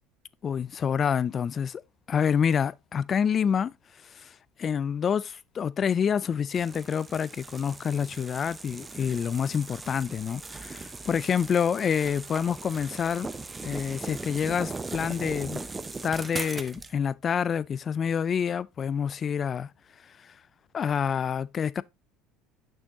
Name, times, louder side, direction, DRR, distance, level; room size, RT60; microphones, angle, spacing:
voice 1, 0.4-1.8 2.1-3.7 4.0-13.3 13.6-15.6 16.0-19.7 20.2-20.3 20.7-21.8, left 7 dB, 35° left, 0.3 m, -27 dB
sound 1, 6.5-16.9, right 3 dB, 20° right, 0.6 m, -39 dB
6.4 x 6.3 x 2.8 m
supercardioid pair, 105°, 0 cm